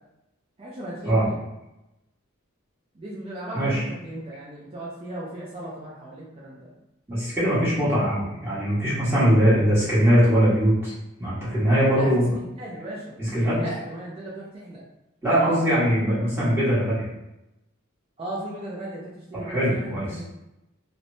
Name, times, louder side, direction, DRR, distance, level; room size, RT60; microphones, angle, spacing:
voice 1, 0.6-1.4 2.9-6.7 11.9-14.8 15.4-15.6 18.2-20.3, right 1 dB, 25° right, -6 dB, 0.5 m, -37 dB
voice 2, 7.1-10.9 11.2-12.2 13.2-13.6 15.2-17.1 19.4-20.1, equal, 10° right, -11 dB, 1.2 m, -21 dB
3.1 x 2.0 x 2.6 m, 0.92 s
head